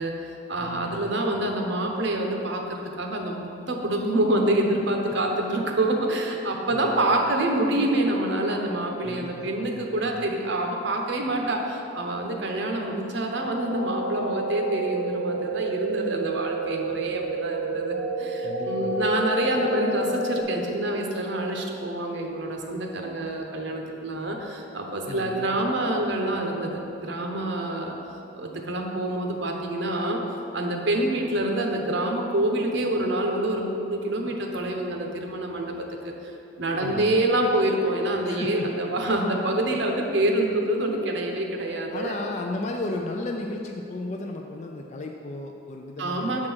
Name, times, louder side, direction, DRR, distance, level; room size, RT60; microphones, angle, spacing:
voice 1, 0.0-28.0 28.3-30.2 30.5-36.1 36.6-42.1 46.0-46.5, right 1 dB, 65° right, 1 dB, 0.9 m, -26 dB
voice 2, 0.6-1.1 6.7-7.0 9.0-10.3 18.4-19.1 25.1-25.6 36.8-37.2 38.2-38.7 41.9-46.5, left 2 dB, 40° left, 1 dB, 0.4 m, -35 dB
sound 1, 13.5-20.4, right 2 dB, 80° right, 1.2 m, -30 dB
7.5 x 3.7 x 6.1 m, 2.9 s
head